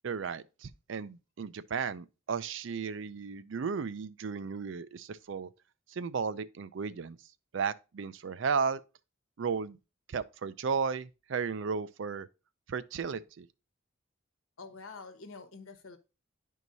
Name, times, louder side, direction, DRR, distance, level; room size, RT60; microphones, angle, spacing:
voice 1, 0.0-5.5 5.9-7.2 7.5-8.8 9.4-9.8 10.1-12.3 12.7-13.5, right 5 dB, 65° right, 0.4 m, -34 dB
voice 2, 14.6-16.0, left 4 dB, 80° left, 1.1 m, -47 dB
11.0 x 4.6 x 2.7 m
head